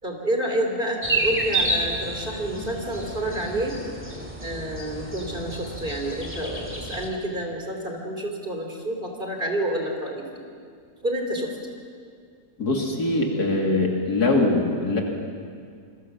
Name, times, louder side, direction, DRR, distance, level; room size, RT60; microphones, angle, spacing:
voice 1, 0.0-3.8 4.4-10.4 11.0-11.6, right 1 dB, 30° right, 2 dB, 3.3 m, -29 dB
sound 1, 1.0-7.1, right 1 dB, 5° right, 2.5 m, -30 dB
voice 2, 12.6-15.0, left 2 dB, 70° left, 1 dB, 3.3 m, -22 dB
28.0 x 21.5 x 7.3 m, 2.2 s
omnidirectional pair, 1.7 m